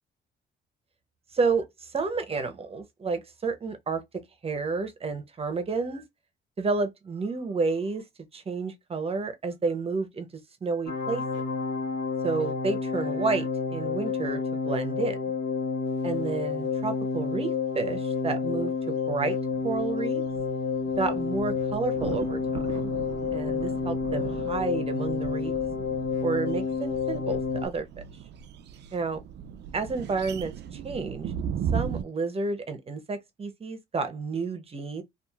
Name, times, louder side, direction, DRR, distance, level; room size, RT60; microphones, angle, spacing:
voice 1, 1.3-4.0 4.4-6.1 6.6-8.0 8.3-10.3 10.6-11.2 12.2-15.2 16.0-19.4 19.6-20.2 21.0-22.4 22.8-22.9 23.3-25.5 26.2-27.9 28.9-29.2 29.7-31.3 31.7-35.0, right 4 dB, 30° right, 0.7 m, -30 dB
sound 1, 10.9-27.7, left 5 dB, 70° left, 1.1 m, -29 dB
sound 2, 19.3-32.0, right 8 dB, 60° right, 0.4 m, -37 dB
2.9 x 2.5 x 2.4 m
cardioid pair, 90°, 20 cm